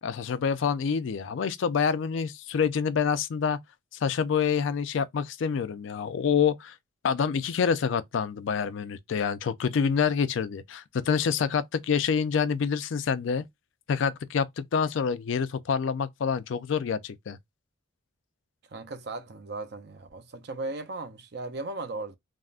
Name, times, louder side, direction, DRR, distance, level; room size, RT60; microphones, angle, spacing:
voice 1, 0.0-3.6 4.0-6.8 7.0-13.4 13.9-17.4, left 6 dB, 70° left, 0.4 m, -27 dB
voice 2, 18.7-22.1, right 2 dB, 55° right, 0.5 m, -37 dB
3.5 x 2.1 x 2.3 m
head